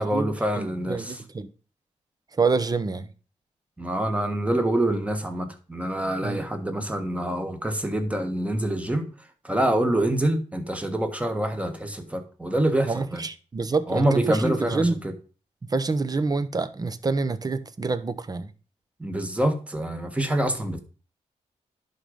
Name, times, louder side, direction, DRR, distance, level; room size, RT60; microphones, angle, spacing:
voice 1, 0.0-1.2 3.8-9.1 9.4-13.2 13.9-15.1 19.0-20.8, right 1 dB, 10° right, 1.5 m, -26 dB
voice 2, 0.6-1.5 2.4-3.1 6.2-6.4 12.9-15.0 15.6-18.5, right 4 dB, 30° right, 0.8 m, -27 dB
11.0 x 4.0 x 5.0 m
cardioid pair, 80°, 12 cm